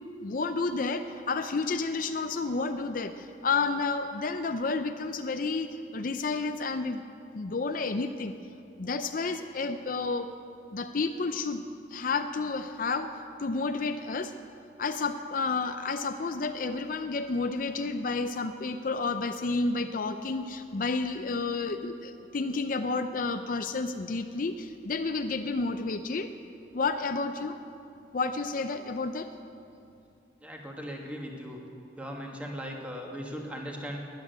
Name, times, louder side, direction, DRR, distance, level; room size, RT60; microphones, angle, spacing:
voice 1, 0.2-7.0 7.3-8.3 8.8-10.3 10.7-11.6 11.9-13.1 13.4-14.3 14.8-26.3 26.7-27.5 28.1-29.3, left 3 dB, 50° left, 8 dB, 0.5 m, -30 dB
voice 2, 30.4-31.6 32.0-34.0, equal, 10° right, 0 dB, 1.8 m, -38 dB
13.5 x 10.0 x 9.4 m, 2.7 s
head